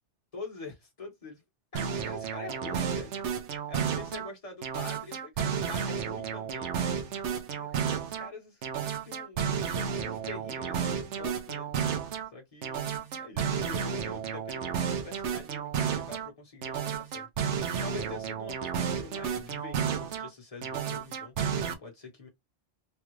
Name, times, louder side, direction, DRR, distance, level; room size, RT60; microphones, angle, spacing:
voice 1, 0.3-1.4 1.7-3.1 3.4-6.8 7.3-22.3, left 3 dB, 30° left, 1.2 m, -45 dB
sound 1, 1.7-4.3 4.6-8.3 8.6-12.3 12.6-16.3 16.6-20.3 20.6-21.7, right 7 dB, 85° right, 1.0 m, -32 dB
3.4 x 2.3 x 3.1 m
omnidirectional pair, 1.2 m